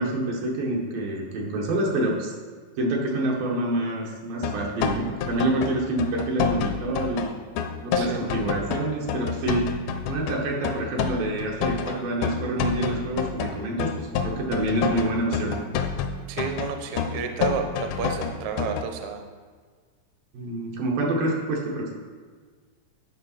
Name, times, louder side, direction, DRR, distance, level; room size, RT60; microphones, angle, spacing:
voice 1, 0.0-2.3 2.8-7.4 7.8-9.7 10.1-15.6 20.3-21.9, right 1 dB, 90° right, -1 dB, 3.2 m, -27 dB
sound 1, 4.4-18.8, left 6 dB, 80° left, 2.0 m, -28 dB
voice 2, 7.9-8.4 16.3-19.2, right 6 dB, 75° right, 5 dB, 1.9 m, -31 dB
11.0 x 5.0 x 5.7 m, 1.5 s
omnidirectional pair, 3.8 m